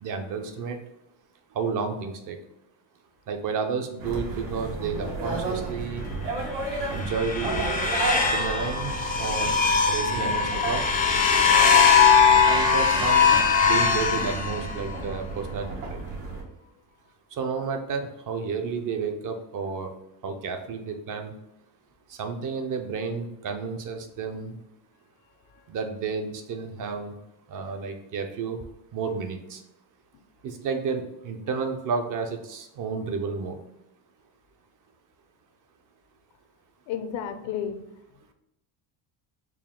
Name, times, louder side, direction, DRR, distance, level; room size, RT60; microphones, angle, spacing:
voice 1, 0.0-0.8 1.5-2.4 3.3-6.0 6.9-7.7 8.3-9.5 9.9-10.8 12.4-16.0 17.3-19.9 20.2-21.3 22.1-24.6 25.7-27.1 27.5-28.6 28.9-29.6 30.4-33.6, right 5 dB, 45° right, 6 dB, 0.5 m, -31 dB
sound 1, 4.0-16.4, right 3 dB, 90° right, 1.3 m, -33 dB
sound 2, 6.7-15.0, left 6 dB, 20° left, 0.3 m, -21 dB
voice 2, 36.9-37.8, left 8 dB, 65° left, 8 dB, 0.6 m, -31 dB
4.4 x 2.3 x 3.6 m, 0.89 s
cardioid pair, 130°, 48 cm